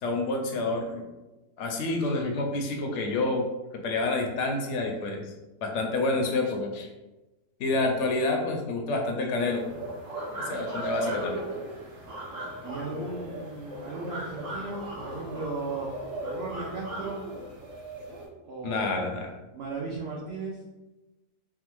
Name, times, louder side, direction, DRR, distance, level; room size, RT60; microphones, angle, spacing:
voice 1, 0.0-1.0 1.6-3.4 3.8-5.3 5.6-6.9 7.6-9.6 10.3-11.4 18.6-19.3, left 2 dB, 70° left, 2 dB, 0.7 m, -28 dB
sound 1, 9.4-18.3, right 1 dB, 60° right, 1.3 m, -37 dB
voice 2, 12.6-15.9 16.2-17.2 18.4-19.2 19.5-20.6, right 3 dB, 85° right, -4 dB, 0.5 m, -36 dB
3.3 x 2.1 x 3.0 m, 1.1 s
omnidirectional pair, 1.6 m